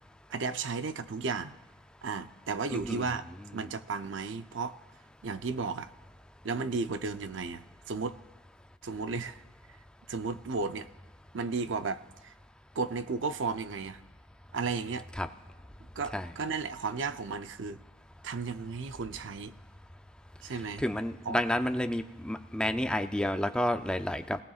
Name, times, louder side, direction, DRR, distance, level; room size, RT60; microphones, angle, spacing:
voice 1, 0.3-1.5 2.0-3.3 3.5-4.8 5.2-5.9 6.4-8.2 8.8-9.4 10.1-10.9 11.3-12.3 12.8-14.0 14.5-15.1 16.0-17.8 18.2-19.5 20.4-20.8 21.3-21.4, right 4 dB, 85° right, 0.6 m, -34 dB
voice 2, 2.7-3.2 15.2-15.3 16.1-16.3 20.8-24.4, left 1 dB, 5° left, 0.5 m, -30 dB
29.0 x 18.0 x 2.4 m
head